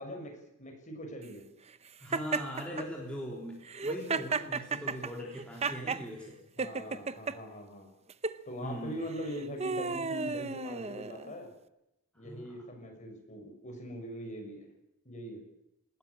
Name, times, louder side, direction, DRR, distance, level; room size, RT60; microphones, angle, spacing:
voice 1, 0.0-1.4 6.6-7.9 8.4-11.5 12.1-14.7 15.0-15.4, equal, 35° left, 2 dB, 6.8 m, -42 dB
voice 2, 2.0-6.4 6.8-7.1 8.6-9.0 12.2-12.6, equal, 5° left, -3 dB, 3.6 m, -40 dB
Laughter, 2.1-2.9 3.7-6.0 6.6-7.4 8.1-8.4 9.1-11.3, right 4 dB, 30° right, 0.8 m, -34 dB
20.5 x 18.5 x 8.5 m, 0.87 s
head